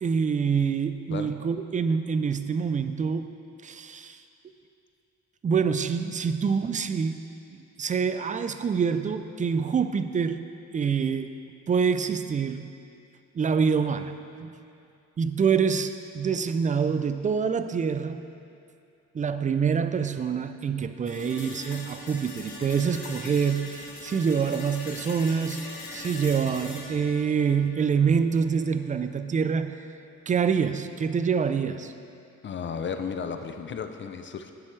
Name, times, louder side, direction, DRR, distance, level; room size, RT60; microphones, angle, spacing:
voice 1, 0.0-3.3 3.6-4.2 5.4-7.2 7.5-10.4 10.7-11.3 11.7-12.7 13.3-14.5 15.2-18.2 19.1-25.6 25.9-29.8 30.3-31.9, right 6 dB, 25° right, 10 dB, 0.4 m, -26 dB
sound 1, 21.1-29.1, left 2 dB, 75° left, 1.5 m, -41 dB
voice 2, 32.4-34.5, left 6 dB, 40° left, 7 dB, 0.5 m, -34 dB
11.0 x 7.4 x 3.2 m, 2.5 s
cardioid pair, 90°, 30 cm